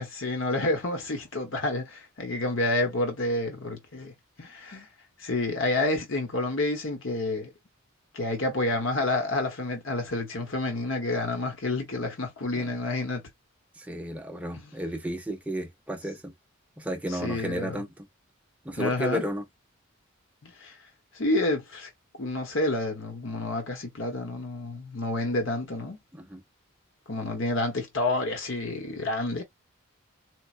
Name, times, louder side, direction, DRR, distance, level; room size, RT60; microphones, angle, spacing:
voice 1, 0.0-4.1 4.4-4.9 5.2-7.5 8.1-13.2 14.6-14.7 17.1-17.8 18.8-19.2 20.4-20.7 21.1-21.9 22.2-26.0 27.1-29.4, left 2 dB, 60° left, 1.0 m, -29 dB
voice 2, 13.8-16.3 16.8-18.1 18.6-19.4 26.1-26.4, equal, 5° right, 0.5 m, -33 dB
4.5 x 2.1 x 2.5 m
head